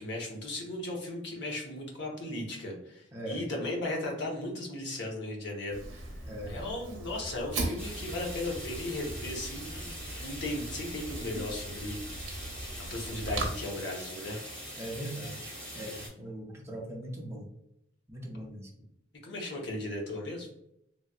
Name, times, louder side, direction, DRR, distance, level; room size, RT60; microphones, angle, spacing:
voice 1, 0.0-6.1 6.5-12.3 12.9-14.4 18.3-18.4 19.2-20.5, left 1 dB, 60° left, -1 dB, 0.8 m, -36 dB
voice 2, 3.1-3.4 6.3-6.6 14.8-17.5 18.1-18.7, right 1 dB, 15° right, -2 dB, 0.5 m, -40 dB
Fire, 5.7-13.5, right 2 dB, 85° right, 0.7 m, -39 dB
sound 1, 7.8-16.1, equal, 5° left, 1.1 m, -43 dB
3.1 x 2.6 x 2.3 m, 0.78 s
head